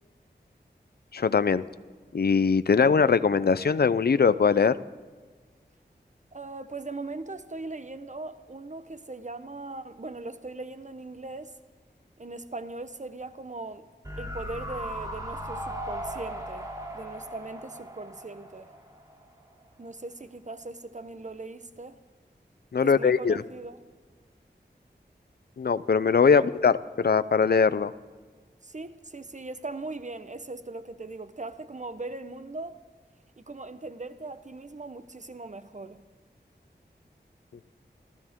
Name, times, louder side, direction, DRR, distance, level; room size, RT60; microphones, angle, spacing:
voice 1, 1.1-1.6 2.1-4.8 22.7-23.4 25.6-27.9, left 5 dB, 60° left, 0.6 m, -21 dB
voice 2, 6.3-11.6 12.2-13.9 14.2-18.7 19.8-22.0 22.8-23.8 26.3-26.5 28.6-32.8 33.4-36.0, right 2 dB, 40° right, 1.0 m, -39 dB
sound 1, 14.0-19.3 19.6-19.7, equal, 20° right, 3.0 m, -38 dB
28.5 x 13.0 x 3.7 m
wide cardioid pair, 50°, 18 cm